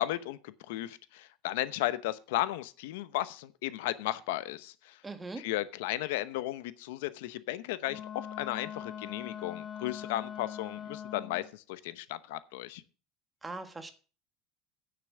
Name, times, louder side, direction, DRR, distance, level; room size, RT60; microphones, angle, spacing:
voice 1, 0.0-5.0 5.4-12.8, left 15 dB, 90° left, 15 dB, 0.8 m, -35 dB
voice 2, 5.0-5.4 13.4-13.9, right 3 dB, 10° right, 9 dB, 1.3 m, -40 dB
Wind instrument woodwind instrument, 7.9-11.5, left 9 dB, 30° left, 1.0 m, -42 dB
9.8 x 6.9 x 6.9 m, 0.37 s
cardioid pair, 150°, 0 cm